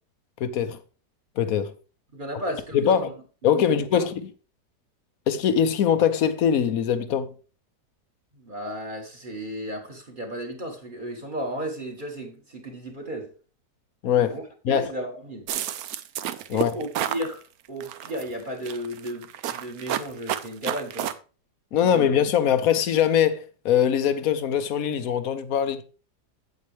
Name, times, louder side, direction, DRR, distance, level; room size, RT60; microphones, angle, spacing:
voice 1, 0.4-0.8 1.4-1.7 2.7-3.1 3.4-4.3 5.3-7.3 14.0-14.4 14.6-14.9 16.5-16.7 21.7-25.8, left 8 dB, 60° left, 1.1 m, -22 dB
voice 2, 2.1-3.1 3.4-4.1 8.4-13.3 14.2-15.5 16.5-17.4 17.7-21.1 21.8-22.0, equal, 30° right, 1.7 m, -34 dB
sound 1, 15.5-17.3 17.8-18.2 18.6-21.1, right 11 dB, 65° right, 1.0 m, -30 dB
8.4 x 8.4 x 3.3 m
omnidirectional pair, 1.9 m